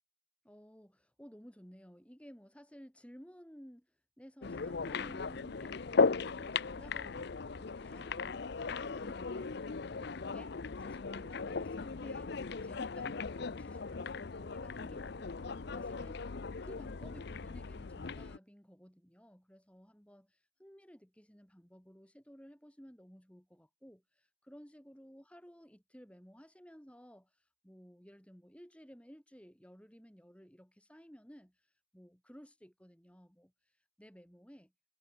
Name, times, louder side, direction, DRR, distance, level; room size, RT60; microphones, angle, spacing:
voice 1, 0.4-3.9 4.2-12.3 12.6-16.3 16.6-31.6 31.9-33.5 34.0-34.7, equal, 5° left, 4.0 m, -56 dB
sound 1, 4.4-18.4, left 4 dB, 55° left, 0.6 m, -37 dB
head